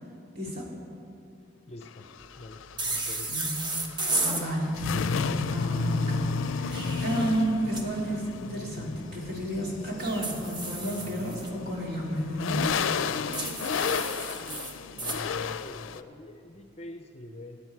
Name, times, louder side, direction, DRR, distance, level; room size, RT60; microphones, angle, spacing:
voice 1, 0.3-0.7 3.3-3.6 4.1-12.7, right 1 dB, 50° right, -3 dB, 2.7 m, -31 dB
voice 2, 1.7-2.1 2.4-3.3 14.9-17.6, left 1 dB, 30° left, 5 dB, 0.6 m, -44 dB
sound 1, 1.8-16.0, left 5 dB, 85° left, 0.4 m, -32 dB
sound 2, 2.8-4.4 6.5-7.8 10.0-11.5 13.3-15.2, right 2 dB, 25° right, 0.9 m, -33 dB
18.5 x 8.5 x 4.7 m, 2.5 s
head